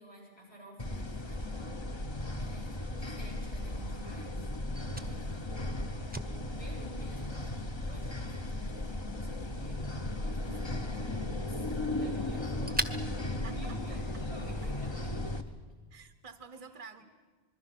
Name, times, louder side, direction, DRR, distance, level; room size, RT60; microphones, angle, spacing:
voice 1, 0.0-1.8 2.3-5.6 6.2-12.8 13.3-15.1, right 1 dB, 70° left, -1 dB, 8.5 m, -51 dB
sound 1, 0.8-15.4, left 1 dB, 25° left, 1.1 m, -36 dB
Fire, 2.8-14.3, right 1 dB, 10° right, 1.0 m, -45 dB
voice 2, 4.8-5.3 10.5-10.6 13.4-14.2 15.9-17.0, right 4 dB, 35° right, 8 dB, 1.0 m, -50 dB
26.5 x 21.5 x 6.1 m, 1.4 s
omnidirectional pair, 1.1 m